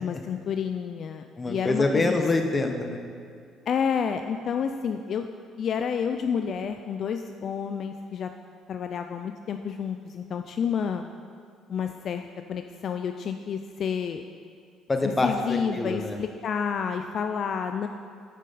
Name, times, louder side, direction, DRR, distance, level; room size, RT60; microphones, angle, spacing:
voice 1, 0.0-2.2 3.7-5.2 5.6-8.3 8.7-11.0 11.7-12.2 12.5-14.2 15.2-17.9, left 7 dB, 55° left, 6 dB, 0.3 m, -29 dB
voice 2, 1.4-3.0 14.9-16.2, left 2 dB, 25° left, 4 dB, 0.9 m, -25 dB
9.1 x 6.3 x 4.1 m, 2.3 s
supercardioid pair, 70°, 0 cm